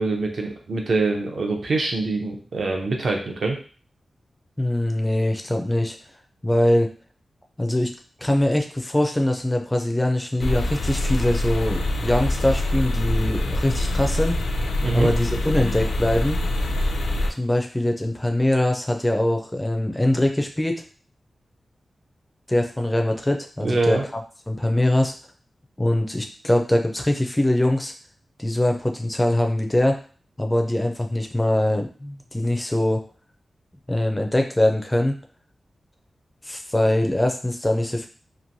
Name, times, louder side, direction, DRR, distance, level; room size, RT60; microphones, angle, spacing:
voice 1, 0.0-3.6 14.8-15.1 23.6-24.0, right 3 dB, 60° right, 2 dB, 0.6 m, -24 dB
voice 2, 4.6-6.0 6.4-6.9 7.6-7.9 8.2-14.4 14.9-16.4 17.4-20.8 22.5-24.0 24.5-25.1 25.8-27.9 28.4-30.0 30.4-33.0 33.9-35.2 36.5-38.1, left 1 dB, 10° left, 3 dB, 0.4 m, -22 dB
sound 1, 10.4-17.3, left 1 dB, 80° left, 0.4 m, -24 dB
3.0 x 2.5 x 2.6 m, 0.40 s
wide cardioid pair, 175°, 0 cm